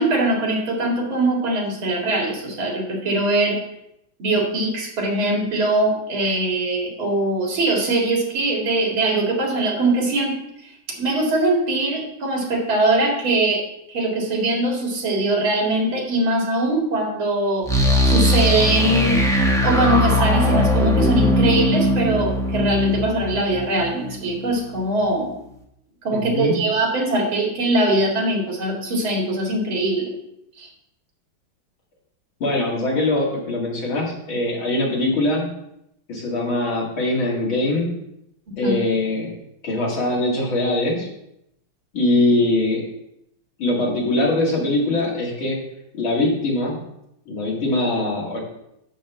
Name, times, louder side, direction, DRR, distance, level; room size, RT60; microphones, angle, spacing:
voice 1, 0.0-3.6 4.2-10.4 10.6-13.6 13.9-17.7 18.0-19.2 19.6-25.3 26.0-30.1 30.6-30.7 38.6-38.8, right 2 dB, 80° right, -1 dB, 2.9 m, -21 dB
sound 1, 17.7-24.5, left 1 dB, 5° left, 0.6 m, -20 dB
voice 2, 26.1-26.6 32.4-35.5 36.1-37.9 38.6-39.3 39.6-41.1 41.9-42.8 43.6-45.6 45.9-46.8 47.3-48.4, left 2 dB, 80° left, -3 dB, 3.1 m, -22 dB
10.0 x 3.6 x 7.2 m, 0.81 s
omnidirectional pair, 2.2 m